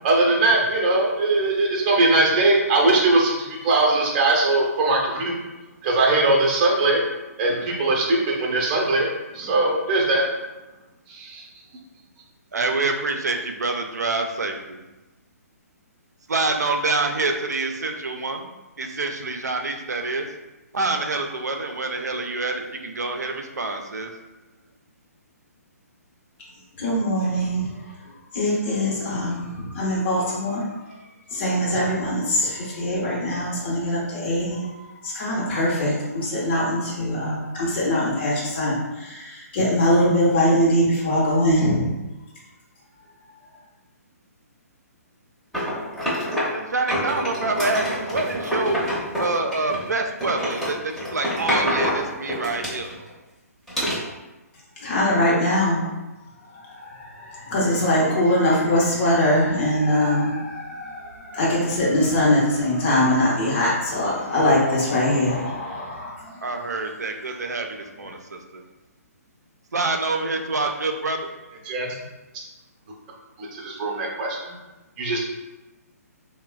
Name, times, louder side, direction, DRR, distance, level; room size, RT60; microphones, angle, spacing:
voice 1, 0.0-5.3 5.8-7.0 7.4-9.1 9.3-10.3 11.1-11.4 71.7-71.9 73.4-74.5 75.0-75.2, right 2 dB, 35° right, -1 dB, 0.6 m, -20 dB
voice 2, 12.5-14.8 16.3-20.3 20.7-24.1 46.5-48.8 49.2-53.0 66.4-68.6 69.7-71.3, right 3 dB, 90° right, 3 dB, 0.4 m, -26 dB
voice 3, 26.8-31.0 31.3-41.9 54.8-55.8 56.5-66.4, left 1 dB, 40° left, -6 dB, 0.8 m, -22 dB
sound 1, 45.5-46.6 46.9-49.9 50.2-53.1 53.7-54.0, equal, 5° left, 0.7 m, -26 dB
3.0 x 2.1 x 2.3 m, 1.1 s
hypercardioid pair, 140°, 9 cm